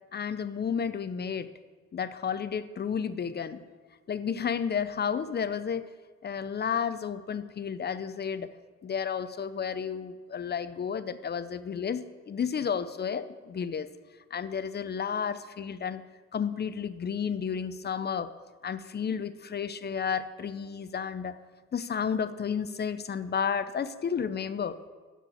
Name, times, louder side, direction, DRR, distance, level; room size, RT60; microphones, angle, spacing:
voice 1, 0.1-1.5 1.9-3.6 4.1-5.9 6.2-8.5 8.8-13.9 14.3-16.0 16.3-18.3 18.6-21.4 21.7-24.8, left 7 dB, 35° left, 12 dB, 0.6 m, -32 dB
13.0 x 4.5 x 8.3 m, 1.4 s
cardioid pair, 90°, 30 cm